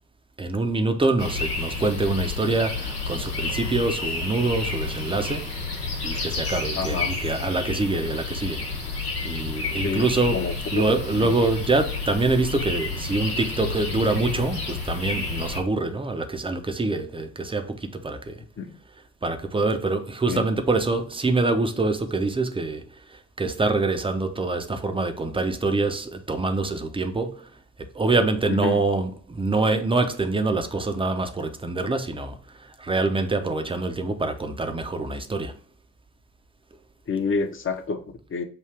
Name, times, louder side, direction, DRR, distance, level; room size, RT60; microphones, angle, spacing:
voice 1, 0.4-8.6 9.2-10.4 10.7-18.4 19.2-27.6 27.9-35.6, right 3 dB, 10° right, 0.7 m, -25 dB
sound 1, 1.2-15.6, left 3 dB, 85° left, 1.1 m, -30 dB
Screaming, 2.7-8.3, right 4 dB, 80° right, 0.9 m, -47 dB
voice 2, 6.8-7.1 9.8-10.1 10.3-10.8 11.2-11.3 18.6-18.8 20.3-20.5 28.5-28.8 37.1-38.4, left 4 dB, 30° left, 0.8 m, -28 dB
5.9 x 2.7 x 3.3 m
figure-of-eight pair, 50°, 45 cm